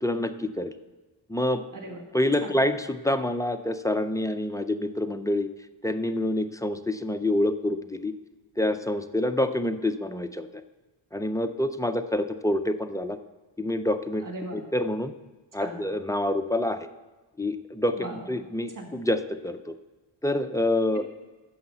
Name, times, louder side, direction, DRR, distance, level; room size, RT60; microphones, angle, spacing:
voice 1, 0.0-0.7 1.3-1.6 2.1-5.5 5.8-8.1 8.6-10.5 11.1-13.2 13.6-14.2 14.7-15.1 15.5-16.9 17.4-19.2 19.4-19.7 20.2-21.0, left 1 dB, 10° left, 8 dB, 0.3 m, -27 dB
voice 2, 1.7-2.1 2.4-2.6 14.2-14.6 15.6-15.8 17.9-18.4 18.7-18.9, right 1 dB, 40° right, 1 dB, 1.9 m, -38 dB
9.6 x 7.0 x 7.7 m, 1.2 s
wide cardioid pair, 165°, 46 cm